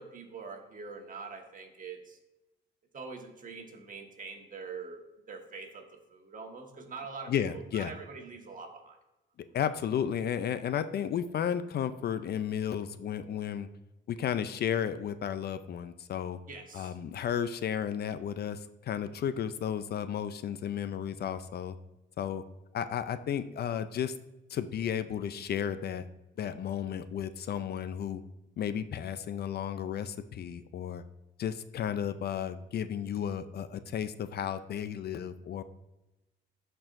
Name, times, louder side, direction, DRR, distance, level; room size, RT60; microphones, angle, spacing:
voice 1, 0.0-2.2 2.9-5.0 5.3-9.0 16.5-16.9, right 4 dB, 40° right, 3 dB, 1.4 m, -44 dB
voice 2, 7.3-7.9 9.4-13.7 14.1-16.4 16.7-21.8 22.2-22.4 22.7-24.2 24.5-26.0 26.4-28.2 28.6-31.0 31.4-35.6, left 9 dB, 55° left, 13 dB, 0.4 m, -33 dB
12.0 x 4.5 x 2.5 m, 1.0 s
cardioid pair, 90°, 20 cm